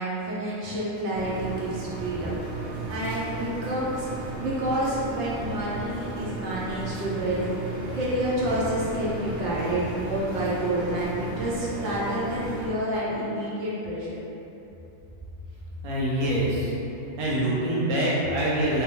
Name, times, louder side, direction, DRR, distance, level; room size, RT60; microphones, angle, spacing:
voice 1, 0.0-2.4 2.9-4.1 4.4-7.5 7.9-14.2, right 1 dB, 90° right, -7 dB, 0.9 m, -29 dB
sound 1, 1.1-12.7, right 2 dB, 70° right, 1.1 m, -35 dB
voice 2, 15.8-16.7 17.2-18.8, right 1 dB, 50° right, -6 dB, 0.4 m, -25 dB
2.2 x 2.1 x 2.9 m, 3.0 s
omnidirectional pair, 1.2 m